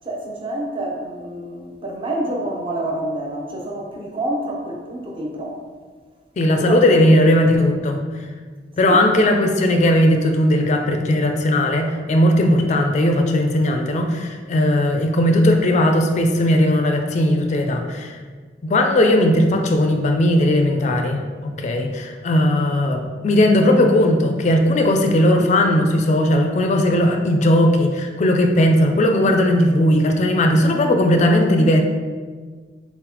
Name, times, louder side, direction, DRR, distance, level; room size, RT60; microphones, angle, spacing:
voice 1, 0.0-5.6 6.6-6.8 8.8-9.0, right 1 dB, 30° right, -1 dB, 0.7 m, -28 dB
voice 2, 6.4-8.0 8.8-18.2 18.6-31.8, left 1 dB, 40° left, 4 dB, 0.4 m, -17 dB
4.0 x 3.9 x 2.9 m, 1.5 s
head